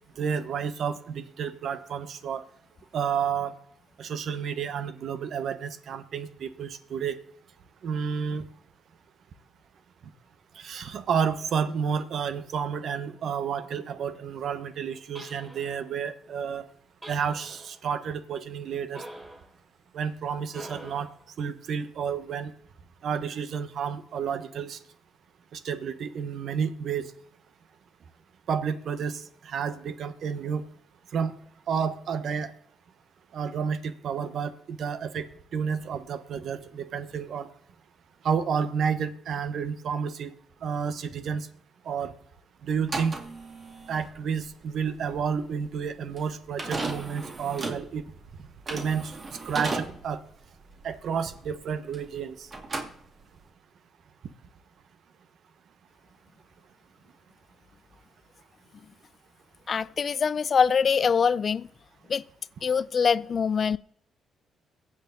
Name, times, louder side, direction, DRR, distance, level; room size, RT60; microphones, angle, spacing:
voice 1, 0.2-2.4 2.9-3.5 4.0-7.2 7.8-8.5 10.5-16.6 17.1-19.0 19.9-21.1 21.4-22.5 23.0-24.8 25.5-27.1 28.5-30.6 31.1-31.3 31.7-32.5 33.3-35.3 35.5-37.5 38.2-40.3 40.6-41.5 41.8-42.1 42.6-43.2 43.9-48.0 48.7-50.2 50.8-52.5, right 7 dB, 65° right, 1.3 m, -30 dB
sound 1, 15.1-15.9 17.0-17.8 18.9-19.5 20.5-21.2, right 1 dB, 20° right, 3.7 m, -44 dB
sound 2, 42.8-52.2 52.5-53.5, right 3 dB, 35° right, 2.4 m, -36 dB
voice 2, 59.7-61.7 62.1-62.2 62.6-63.8, left 6 dB, 45° left, 0.4 m, -24 dB
22.5 x 8.1 x 4.0 m
cardioid pair, 90°, 0 cm